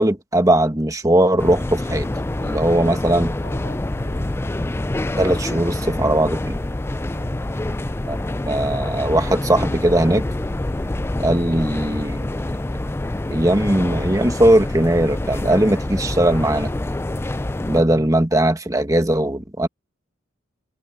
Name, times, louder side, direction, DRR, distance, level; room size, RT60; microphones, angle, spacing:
voice 1, 0.0-2.1 2.4-3.3 5.2-6.6 8.1-8.2 8.4-10.2 11.2-12.4 13.3-16.7 17.7-19.7, right 1 dB, 15° right, 1.6 m, -19 dB
sound 1, 1.4-17.8, left 1 dB, 10° left, 0.4 m, -26 dB
voice 2, 2.8-4.3 7.1-7.4, equal, 40° left, 5.6 m, -38 dB
head